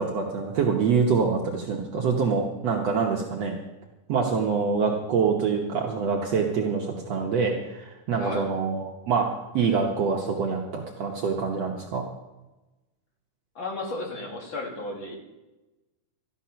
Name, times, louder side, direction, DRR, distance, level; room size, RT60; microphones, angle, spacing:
voice 1, 0.0-3.5 4.1-9.3 9.5-12.0, right 5 dB, 60° right, 0 dB, 2.0 m, -25 dB
voice 2, 8.2-8.5 13.5-15.2, left 2 dB, 40° left, 0 dB, 2.8 m, -33 dB
14.0 x 10.5 x 5.7 m, 1.1 s
omnidirectional pair, 3.6 m